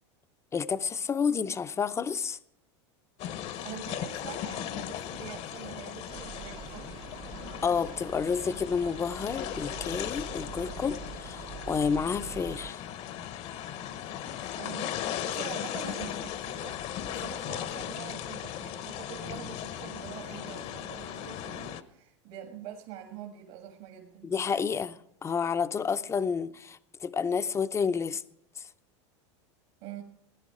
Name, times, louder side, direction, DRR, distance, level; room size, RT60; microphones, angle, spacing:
voice 1, 0.5-2.4 7.6-12.8 24.2-28.2 28.6-28.7, left 6 dB, 20° left, 0.6 m, -30 dB
sound 1, 3.2-21.8, left 10 dB, 45° left, 0.9 m, -38 dB
voice 2, 3.3-6.9 14.3-24.3 29.8-30.0, right 10 dB, 60° right, 1.9 m, -45 dB
sound 2, 6.1-12.7, right 9 dB, 35° right, 0.7 m, -45 dB
17.0 x 10.5 x 4.9 m
supercardioid pair, 115°, 15 cm